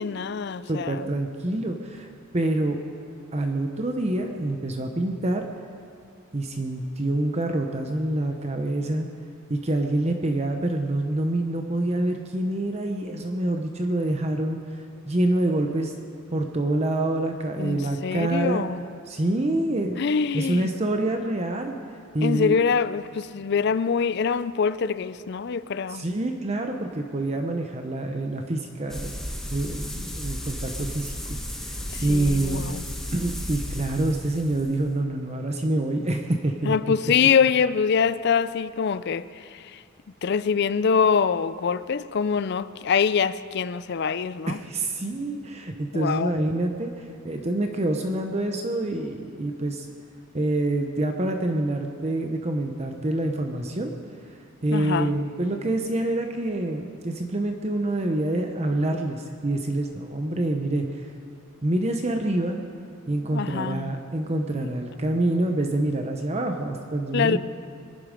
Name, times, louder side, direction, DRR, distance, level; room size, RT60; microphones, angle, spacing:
voice 1, 0.0-1.0 17.6-18.8 20.0-20.7 22.2-26.0 31.9-32.8 36.6-39.3 39.7-39.8 40.2-44.6 45.9-46.3 54.7-55.1 63.3-63.9 67.1-67.4, left 6 dB, 55° left, 0.4 m, -24 dB
voice 2, 0.7-2.1 2.3-2.8 3.3-5.5 6.3-9.1 9.5-15.9 16.3-18.6 19.1-20.0 20.3-21.8 22.1-22.6 25.9-32.7 33.1-36.7 44.5-49.9 50.3-53.9 54.6-61.1 61.6-62.6 63.1-67.4, right 1 dB, 30° right, 0.8 m, -26 dB
sound 1, 28.9-34.9, equal, ahead, 1.1 m, -33 dB
22.5 x 10.5 x 5.2 m
head